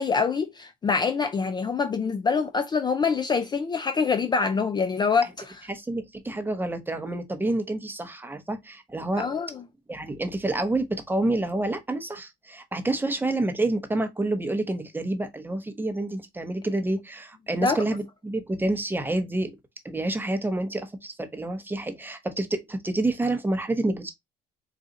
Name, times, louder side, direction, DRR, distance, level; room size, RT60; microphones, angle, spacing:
voice 1, 0.0-5.6 9.2-9.6 17.6-17.8, left 5 dB, 25° left, 0.4 m, -25 dB
voice 2, 5.7-9.3 9.9-19.5 19.8-24.1, right 2 dB, 10° right, 0.8 m, -28 dB
3.8 x 2.4 x 3.9 m
cardioid pair, 110°, 17 cm